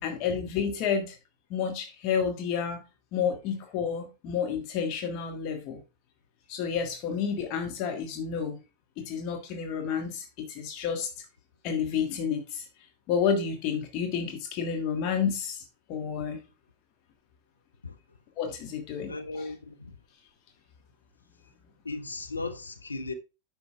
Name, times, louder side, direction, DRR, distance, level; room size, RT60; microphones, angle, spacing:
voice 1, 0.0-1.2 1.5-2.8 3.1-5.8 6.5-8.6 9.0-11.1 11.6-12.7 13.1-16.4 18.4-19.5, left 7 dB, 40° left, 1.6 m, -30 dB
voice 2, 19.1-20.0 21.8-23.1, left 3 dB, 80° left, 0.9 m, -36 dB
9.8 x 6.8 x 3.4 m
figure-of-eight pair, 90°, 0 cm